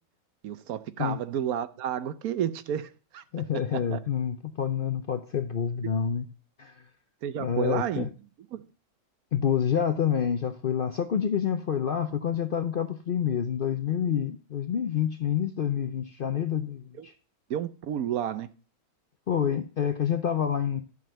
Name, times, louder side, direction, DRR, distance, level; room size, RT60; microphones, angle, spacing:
voice 1, 0.4-3.2 3.9-4.0 7.2-8.1 8.5-8.6 17.0-17.1 17.5-18.5, right 10 dB, 75° right, 1.2 m, -31 dB
voice 2, 3.3-6.3 6.6-6.8 7.4-8.1 9.3-17.1 19.3-20.8, left 8 dB, 60° left, 0.6 m, -28 dB
12.0 x 4.0 x 7.7 m
omnidirectional pair, 1.6 m